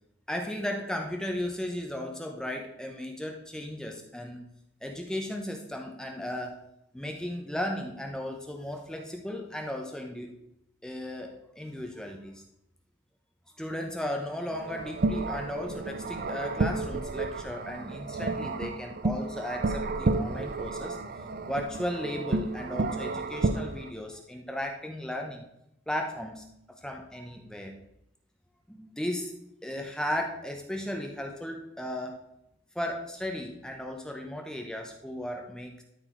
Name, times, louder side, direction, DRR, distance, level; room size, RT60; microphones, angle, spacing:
voice 1, 0.3-4.4 4.8-6.6 6.9-10.3 10.8-12.4 13.6-21.0 21.4-25.4 25.9-27.8 28.7-29.3 29.6-32.2 32.7-35.8, left 1 dB, 5° left, 2 dB, 0.8 m, -35 dB
sound 1, 14.5-23.9, right 3 dB, 45° right, 0.5 m, -31 dB
12.5 x 4.5 x 4.5 m, 0.80 s
head